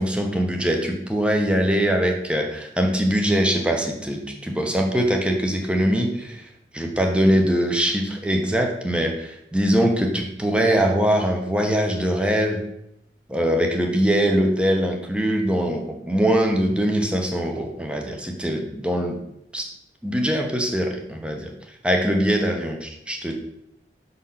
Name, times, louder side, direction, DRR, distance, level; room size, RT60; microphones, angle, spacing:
voice 1, 0.0-6.4 6.7-12.6 13.3-19.2 19.5-19.7 20.0-21.5 21.8-23.3, equal, 5° right, 2 dB, 0.9 m, -22 dB
6.2 x 4.1 x 5.7 m, 0.80 s
head